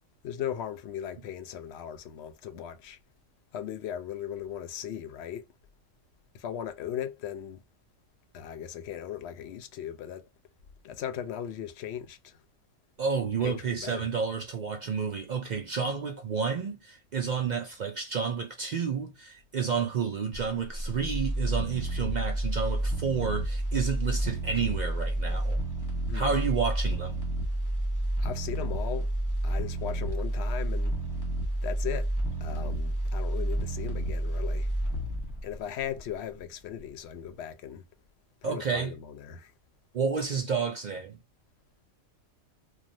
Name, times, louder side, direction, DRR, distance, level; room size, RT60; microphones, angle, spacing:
voice 1, 0.2-3.0 3.5-5.4 6.3-7.6 8.3-10.2 10.8-12.3 13.4-14.0 26.1-26.4 28.2-29.1 29.4-30.9 31.6-32.1 32.4-34.7 35.4-37.8 38.4-39.5, left 9 dB, 65° left, 0.7 m, -37 dB
voice 2, 13.0-25.6 26.1-27.3 38.4-39.0 39.9-41.2, right 6 dB, 90° right, 0.4 m, -30 dB
sound 1, 20.3-36.4 36.8-36.9, right 1 dB, 15° left, 0.9 m, -30 dB
3.1 x 2.3 x 2.5 m
omnidirectional pair, 1.4 m